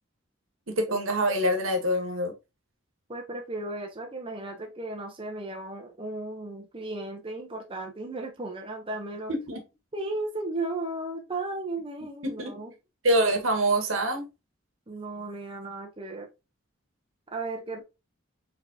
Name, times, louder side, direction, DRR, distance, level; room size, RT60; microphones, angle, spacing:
voice 1, 0.7-2.3 9.3-9.6 12.2-12.5 13.0-14.3, right 1 dB, 80° right, 1.3 m, -25 dB
voice 2, 3.1-9.3 9.9-12.7 14.9-16.3 17.3-17.8, right 2 dB, 25° right, 0.8 m, -35 dB
4.5 x 3.6 x 2.7 m
head